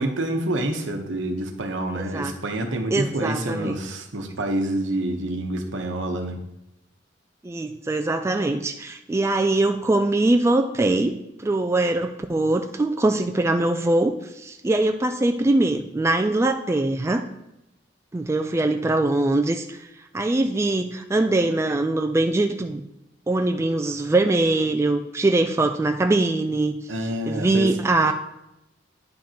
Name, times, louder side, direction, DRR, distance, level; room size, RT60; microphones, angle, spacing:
voice 1, 0.0-6.4 26.9-27.7, right 1 dB, 75° right, 4 dB, 1.0 m, -27 dB
voice 2, 1.9-2.3 2.9-3.8 7.4-17.3 18.1-19.9 20.1-22.8 23.3-26.7 27.3-28.1, right 2 dB, 15° right, 5 dB, 0.3 m, -22 dB
10.5 x 5.3 x 2.9 m, 0.88 s
head